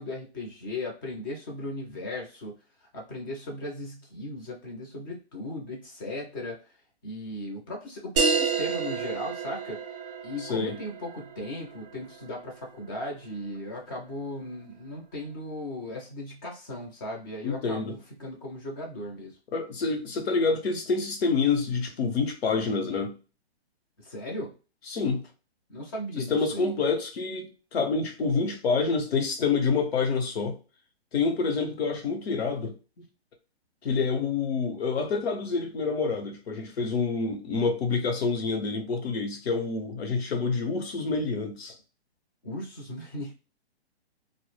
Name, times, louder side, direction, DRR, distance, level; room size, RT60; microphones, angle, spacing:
voice 1, 0.0-2.5 2.8-6.6 7.0-9.8 10.2-19.4 24.0-24.5 25.7-26.7 42.4-43.3, left 1 dB, 20° left, 0.5 m, -37 dB
sound 1, 8.2-13.2, right 5 dB, 25° right, 0.6 m, -30 dB
voice 2, 10.4-10.8 17.4-18.0 19.5-23.2 24.9-25.2 26.2-30.6 31.1-32.8 33.8-41.7, left 4 dB, 70° left, 0.8 m, -27 dB
2.1 x 2.0 x 3.0 m
hypercardioid pair, 150°, 33 cm